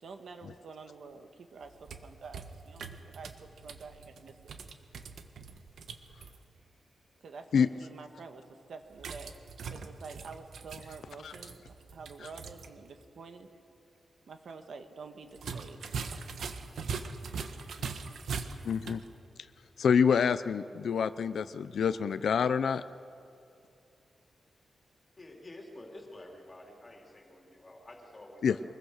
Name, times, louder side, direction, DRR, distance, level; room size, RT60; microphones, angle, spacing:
voice 1, 0.0-3.3 3.6-4.4 7.2-9.3 9.7-11.6 11.9-13.5 14.3-15.8 16.6-16.7 17.5-17.8 18.2-18.3, right 4 dB, 60° right, 6 dB, 1.6 m, -48 dB
sound 1, 1.6-6.4 9.0-12.7 13.0-13.1 15.3-19.1, right 5 dB, 80° right, 1.4 m, -41 dB
voice 2, 18.6-19.0 19.8-22.8 28.4-28.6, left 6 dB, 65° left, 13 dB, 0.5 m, -27 dB
voice 3, 25.2-28.6, left 1 dB, 20° left, 1 dB, 3.3 m, -49 dB
24.0 x 21.5 x 6.5 m, 2.5 s
wide cardioid pair, 175°, 0 cm